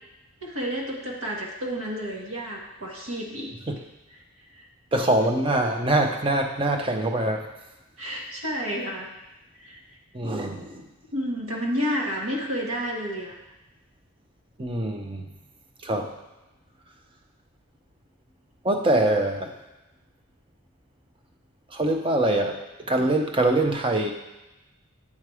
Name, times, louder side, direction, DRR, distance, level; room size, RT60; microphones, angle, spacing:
voice 1, 0.4-3.5 8.0-9.1 9.6-9.8 11.1-13.3, equal, 85° right, -2 dB, 1.4 m, -30 dB
voice 2, 4.9-7.5 10.1-10.8 14.6-15.3 15.8-16.1 18.6-19.5 21.7-22.6 22.9-24.1, right 1 dB, 25° right, 3 dB, 0.6 m, -23 dB
8.5 x 3.2 x 4.7 m, 1.0 s
head